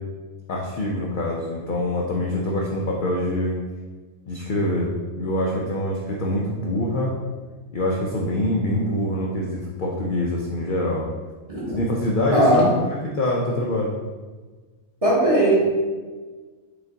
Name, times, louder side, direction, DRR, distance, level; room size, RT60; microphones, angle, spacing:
voice 1, 0.5-3.6 4.3-7.2 7.7-11.1 11.7-13.9, left 1 dB, 75° left, -2 dB, 0.4 m, -25 dB
voice 2, 12.3-12.6 15.0-15.8, right 1 dB, 30° right, -6 dB, 0.9 m, -18 dB
4.9 x 2.4 x 3.8 m, 1.4 s
omnidirectional pair, 1.5 m